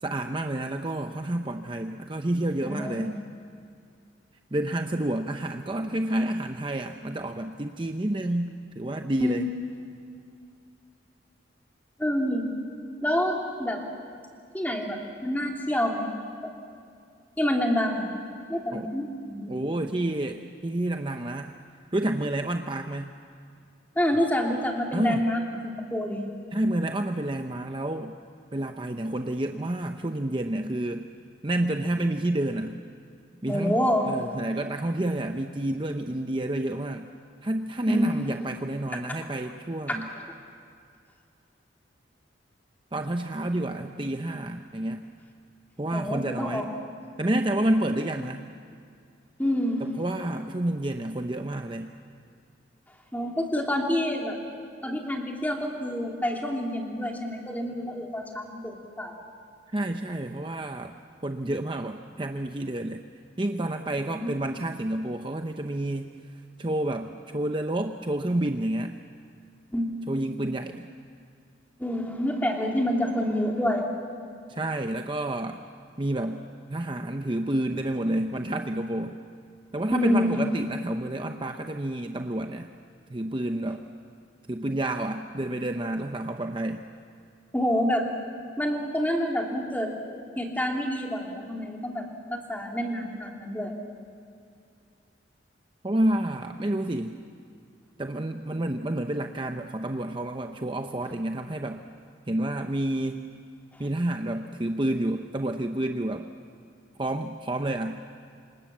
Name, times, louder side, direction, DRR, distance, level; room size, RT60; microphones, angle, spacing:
voice 1, 0.0-3.2 4.5-9.5 18.7-18.9 19.5-21.6 21.9-23.1 24.9-25.3 26.5-28.1 28.5-31.1 31.4-32.8 33.4-33.8 34.1-37.1 37.4-40.1 42.9-45.0 45.8-46.6 47.2-48.5 49.8-51.9 59.7-60.9 61.2-63.0 63.4-66.1 66.6-68.9 70.1-70.8 74.5-75.6 76.0-76.4 76.7-79.2 79.7-82.7 83.1-83.8 84.5-86.8 95.8-97.1 98.0-101.8 102.3-103.2 103.8-106.3 107.0-108.0, right 1 dB, 25° right, 5 dB, 0.7 m, -29 dB
voice 2, 2.6-3.1 9.2-9.4 12.0-12.5 13.0-13.8 14.5-16.1 16.4-16.5 17.4-18.1 18.5-19.6 23.9-26.3 33.5-34.1 37.9-38.2 45.9-46.6 49.4-49.8 53.1-54.4 54.8-59.1 63.9-64.3 69.7-69.9 71.8-73.9 79.9-80.4 87.5-88.0 88.6-89.9 90.4-93.7 103.7-103.8, equal, 10° left, 0 dB, 2.8 m, -27 dB
27.0 x 26.5 x 7.3 m, 2.4 s
head